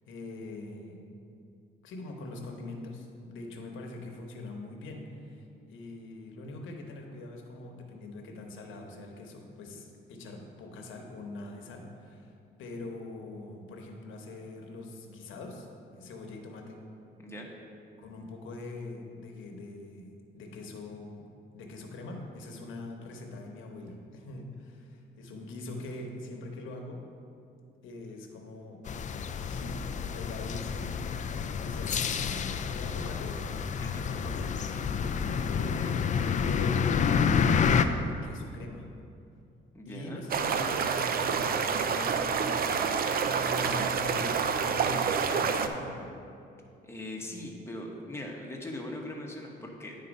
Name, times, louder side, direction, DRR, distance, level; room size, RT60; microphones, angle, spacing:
voice 1, 0.1-1.2 1.8-12.3 12.6-15.7 15.9-16.8 18.0-20.1 20.3-27.0 27.8-28.8 29.4-29.8 30.1-31.0 31.6-33.4 34.0-36.8 37.1-38.9 39.8-42.8 43.4-46.1, left 2 dB, 80° left, 2 dB, 1.1 m, -43 dB
sound 1, 28.9-37.8, left 6 dB, 40° left, 0.4 m, -29 dB
voice 2, 39.7-40.2 46.8-50.0, left 1 dB, 15° left, -1 dB, 1.3 m, -40 dB
sound 2, 40.3-45.7, right 6 dB, 50° right, 0.5 m, -28 dB
9.7 x 4.1 x 5.3 m, 2.6 s
cardioid pair, 90°, 20 cm